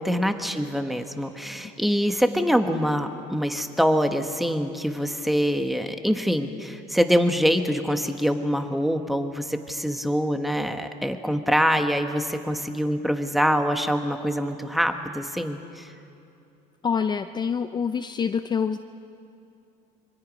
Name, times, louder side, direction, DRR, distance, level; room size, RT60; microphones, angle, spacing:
voice 1, 0.0-15.9, equal, ahead, 6 dB, 1.3 m, -24 dB
voice 2, 16.8-18.8, left 6 dB, 25° left, 9 dB, 0.5 m, -26 dB
27.0 x 24.0 x 5.3 m, 2.7 s
cardioid pair, 125°, 17 cm